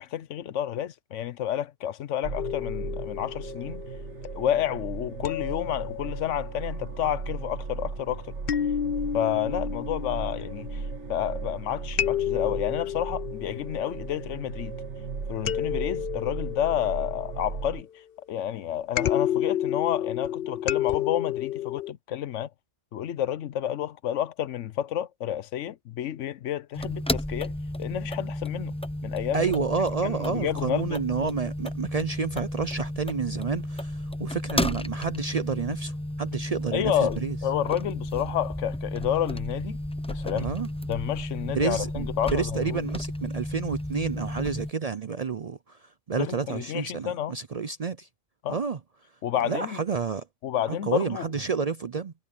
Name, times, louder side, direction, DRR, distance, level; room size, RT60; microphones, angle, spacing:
voice 1, 0.0-3.8 4.4-8.3 9.1-10.8 11.1-14.8 15.3-17.9 18.3-22.5 22.9-27.5 27.8-28.7 29.0-29.5 30.0-31.0 36.7-39.8 40.1-40.5 40.9-42.8 46.1-47.4 48.4-48.6 49.2-49.8 50.4-51.3, left 11 dB, 85° left, 1.1 m, -30 dB
sound 1, 2.2-17.8, right 4 dB, 75° right, 1.8 m, -37 dB
sound 2, 2.4-4.4 5.2-6.8 8.5-11.4 12.0-14.6 15.5-17.7 19.0-21.9, left 10 dB, 55° left, 0.8 m, -31 dB
sound 3, 26.7-44.7, left 1 dB, 5° left, 0.7 m, -33 dB
voice 2, 29.3-37.4 40.4-40.7 41.4-48.1 48.5-48.8 49.5-50.3 50.7-52.1, right 5 dB, 50° right, 0.5 m, -30 dB
omnidirectional pair, 1.2 m